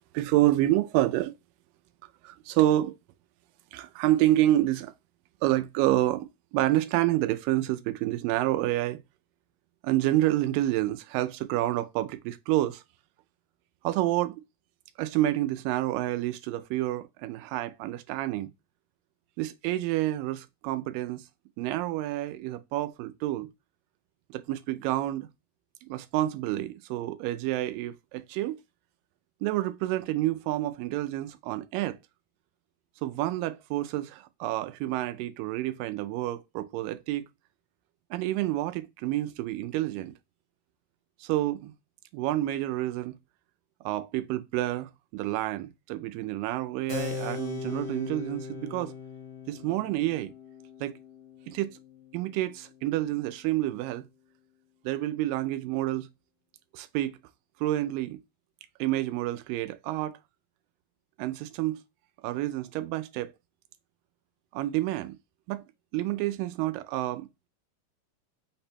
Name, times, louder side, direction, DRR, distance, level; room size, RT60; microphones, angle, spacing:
voice 1, 0.1-1.4 2.2-3.0 3.7-4.9 5.4-9.0 9.8-12.8 13.8-14.4 15.0-18.5 19.4-21.2 21.6-23.5 24.3-25.3 25.9-28.6 29.4-32.0 33.0-37.2 38.1-40.1 41.2-41.7 42.1-43.1 43.9-48.9 49.5-50.3 50.8-51.0 51.5-51.8 52.1-54.0 54.9-56.1 56.7-57.2 57.6-58.2 58.8-60.2 61.2-61.8 62.2-63.3 64.5-65.2 65.5-65.6 65.9-67.3, right 15 dB, 90° right, 2.3 m, -28 dB
Keyboard (musical), 46.9-53.0, left 4 dB, 80° left, 1.1 m, -39 dB
5.8 x 2.2 x 4.2 m
omnidirectional pair, 3.9 m